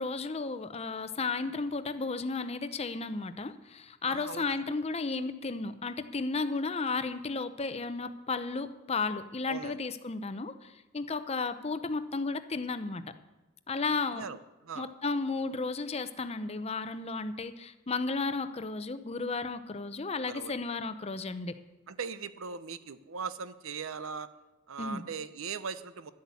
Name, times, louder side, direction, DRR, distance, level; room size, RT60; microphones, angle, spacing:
voice 1, 0.0-13.0 13.7-14.2 14.8-21.5 24.8-25.0, left 4 dB, 30° left, 11 dB, 0.6 m, -33 dB
voice 2, 4.1-4.6 9.5-9.8 14.1-14.4 14.6-14.9 20.3-20.5 21.9-24.3 24.7-26.1, right 5 dB, 80° right, 13 dB, 0.7 m, -39 dB
12.0 x 8.3 x 8.3 m, 1.1 s
head